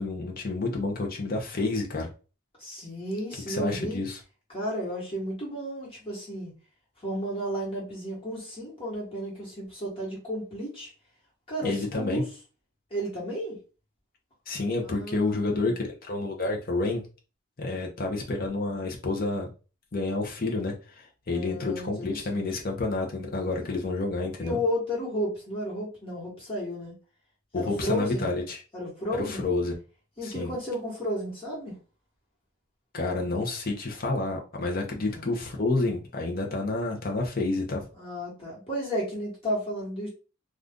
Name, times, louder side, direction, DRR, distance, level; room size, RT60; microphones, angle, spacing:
voice 1, 0.0-2.1 3.5-4.2 11.6-12.2 14.5-17.0 17.6-19.5 19.9-24.6 27.5-28.6 29.3-29.8 30.2-30.5 32.9-37.8, left 2 dB, 40° left, 0 dB, 0.6 m, -29 dB
voice 2, 2.6-4.0 4.5-6.5 7.0-10.9 11.5-12.2 12.9-13.6 14.8-15.7 21.3-22.5 23.6-23.7 24.4-26.9 27.5-28.3 28.7-29.5 30.2-31.7 34.9-35.3 37.9-40.1, equal, 25° left, -5 dB, 1.3 m, -33 dB
2.5 x 2.4 x 3.5 m, 0.34 s
head